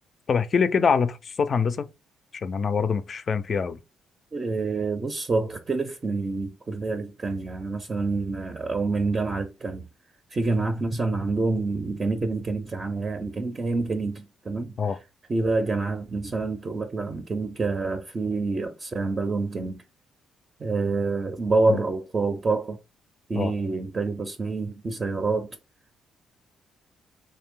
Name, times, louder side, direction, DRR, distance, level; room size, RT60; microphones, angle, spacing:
voice 1, 0.3-1.9 2.3-3.8 14.8-15.0 21.7-21.8 23.3-23.5, left 6 dB, 45° left, 0.4 m, -24 dB
voice 2, 4.3-9.8 10.3-15.0 15.3-19.8 20.6-22.8 23.3-25.5, right 3 dB, 35° right, 0.5 m, -27 dB
3.3 x 2.6 x 3.6 m
cardioid pair, 90°, 0 cm